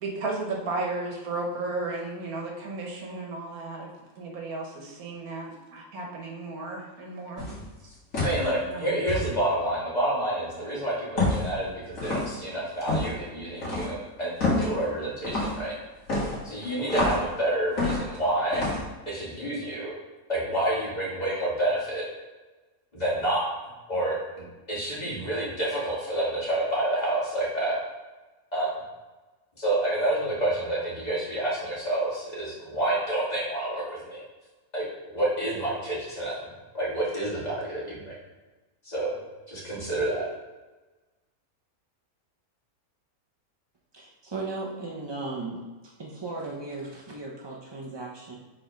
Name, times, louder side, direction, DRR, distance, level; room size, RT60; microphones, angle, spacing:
voice 1, 0.0-3.9 4.2-7.6 8.7-8.8, right 3 dB, 80° right, 0 dB, 1.6 m, -34 dB
sound 1, 7.4-7.6 8.1-8.5 9.1-9.3 11.2-11.5 12.0-12.3 12.8-13.1 13.6-13.9 14.4-14.7 15.2-15.6 16.1-17.3 17.8-18.2 18.5-18.8, left 2 dB, 65° left, 2.1 m, -27 dB
voice 2, 8.2-15.8 16.4-18.6 19.1-20.0 20.3-22.0 22.9-23.5 23.9-24.2 24.7-27.8 28.5-28.7 29.6-34.2 34.7-34.8 35.1-38.2 38.8-39.1 39.5-40.3, right 1 dB, 30° left, -7 dB, 2.2 m, -28 dB
voice 3, 43.9-45.6 46.0-48.4, right 3 dB, 35° right, -3 dB, 0.4 m, -36 dB
5.0 x 4.2 x 5.1 m, 1.2 s
omnidirectional pair, 1.5 m